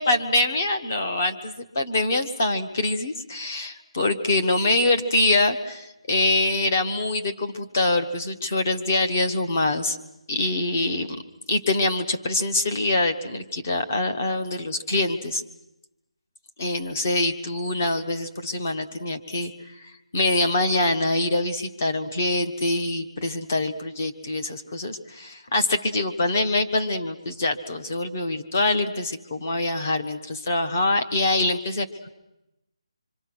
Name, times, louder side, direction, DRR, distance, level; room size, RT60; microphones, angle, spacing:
voice 1, 0.0-10.0 10.3-11.1 11.5-15.4 16.6-19.5 20.1-32.1, left 2 dB, 25° left, 7 dB, 1.2 m, -24 dB
26.5 x 24.5 x 6.2 m, 0.92 s
hypercardioid pair, 180°, 3 cm